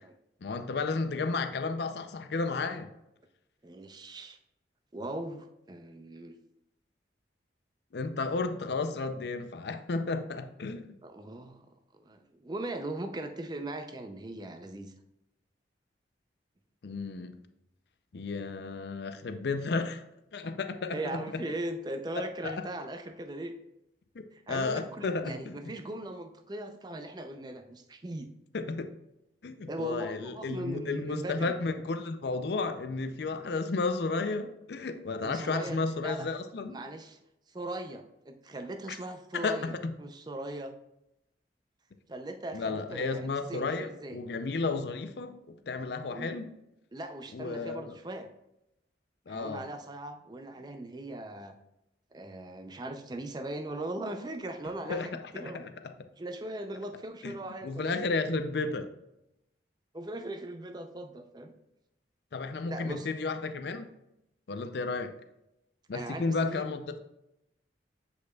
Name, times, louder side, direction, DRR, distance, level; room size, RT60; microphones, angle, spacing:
voice 1, 0.4-2.9 7.9-10.9 16.8-17.4 18.1-20.0 20.3-21.4 22.1-22.5 24.2-25.6 28.5-28.9 29.4-36.8 39.3-39.9 42.5-46.5 47.3-47.9 49.3-49.7 54.9-55.1 55.4-55.7 57.2-57.3 57.6-58.9 62.3-63.9 64.5-65.1 65.9-67.0, left 3 dB, 65° left, 8 dB, 0.5 m, -33 dB
voice 2, 3.6-4.4 4.9-6.3 11.0-11.7 11.9-14.9 20.9-23.5 24.3-28.3 29.7-31.5 35.2-36.3 36.7-37.2 37.5-40.7 42.1-44.2 46.1-46.3 46.9-48.3 49.3-51.6 52.1-55.7 56.2-58.0 59.9-61.5 62.7-63.1 65.9-66.6, right 1 dB, 20° right, 7 dB, 0.4 m, -39 dB
8.2 x 5.0 x 2.3 m, 0.85 s
head